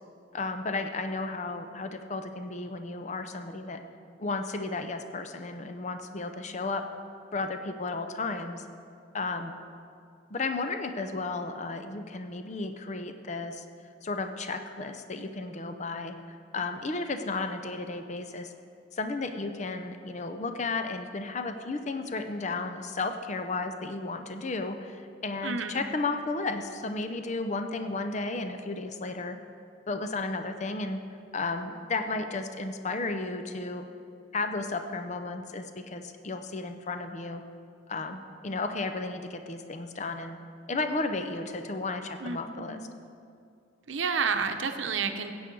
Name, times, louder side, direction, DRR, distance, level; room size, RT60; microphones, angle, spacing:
voice 1, 0.3-3.8 4.2-6.8 7.3-8.7 9.1-9.5 10.3-13.6 14.0-18.5 18.9-29.4 29.9-31.0 31.3-33.9 34.3-37.4 37.9-40.4 40.7-42.8, left 3 dB, 35° left, 7 dB, 0.6 m, -33 dB
voice 2, 25.4-25.8 42.2-42.9 43.9-45.3, right 5 dB, 80° right, 7 dB, 0.8 m, -30 dB
15.0 x 8.5 x 4.7 m, 2.4 s
head